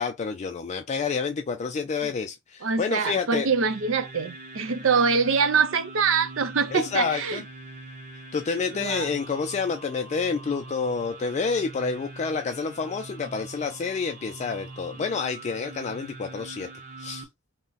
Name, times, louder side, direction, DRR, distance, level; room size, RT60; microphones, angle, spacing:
voice 1, 0.0-3.5 6.7-7.4 8.3-16.7 17.0-17.3, left 5 dB, 35° left, 0.3 m, -28 dB
voice 2, 2.6-7.4 8.7-9.1, right 5 dB, 90° right, 0.6 m, -24 dB
sound 1, 2.9-17.2, right 2 dB, 45° right, 0.9 m, -43 dB
3.7 x 2.1 x 3.9 m
head